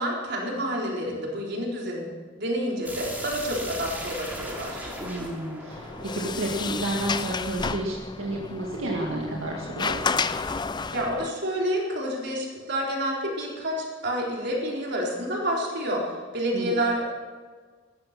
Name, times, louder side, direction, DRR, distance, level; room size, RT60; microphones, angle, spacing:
voice 1, 0.0-2.1 2.4-4.9 10.9-17.0, equal, 55° right, -2 dB, 4.1 m, -29 dB
sound 1, 2.8-7.6, equal, 10° right, 2.8 m, -38 dB
voice 2, 5.0-10.0 16.5-16.7, right 1 dB, 75° right, -2 dB, 2.1 m, -31 dB
Sliding door, 5.7-11.3, left 5 dB, 20° left, 0.5 m, -31 dB
16.5 x 13.5 x 6.0 m, 1.5 s
head